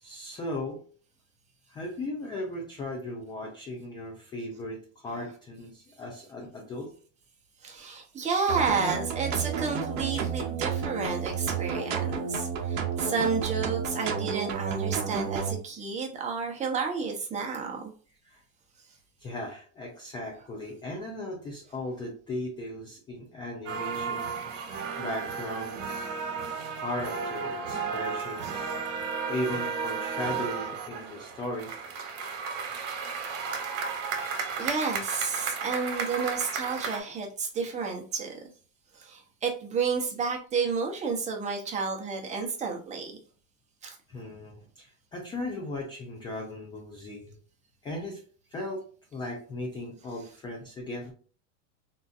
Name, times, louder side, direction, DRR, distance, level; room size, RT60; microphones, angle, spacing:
voice 1, 0.0-0.8 1.7-6.9 18.3-18.4 19.2-24.3 24.9-26.1 26.8-28.7 29.3-31.7 34.2-34.3 44.1-47.3 47.8-48.2 48.5-48.8 49.1-51.1, left 1 dB, 15° left, 0 dB, 0.3 m, -37 dB
voice 2, 7.6-17.9 26.2-26.4 33.2-33.5 34.6-38.4 38.9-43.1 43.8-44.0, right 5 dB, 20° right, 1 dB, 0.7 m, -31 dB
sound 1, 8.5-15.5, right 7 dB, 45° right, 0.9 m, -31 dB
sound 2, 23.7-37.0, right 5 dB, 75° right, 1.0 m, -33 dB
3.7 x 2.5 x 2.4 m, 0.41 s
supercardioid pair, 135°, 38 cm